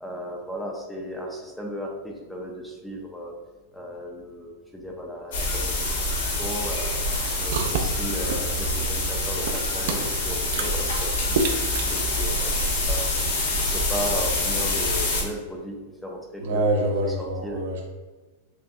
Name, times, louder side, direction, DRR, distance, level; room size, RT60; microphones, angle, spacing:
voice 1, 0.0-3.3 3.7-5.7 6.2-7.0 7.4-11.6 11.9-13.1 13.6-15.8 16.0-16.9 17.4-17.7, equal, ahead, 0 dB, 0.4 m, -35 dB
sound 1, 5.3-15.2, left 2 dB, 75° left, 1.3 m, -26 dB
sound 2, 7.1-12.7, right 4 dB, 60° right, 0.4 m, -31 dB
voice 2, 16.4-17.9, right 1 dB, 90° right, 0 dB, 1.0 m, -25 dB
6.0 x 2.2 x 2.7 m, 1.3 s
supercardioid pair, 170°, 0 cm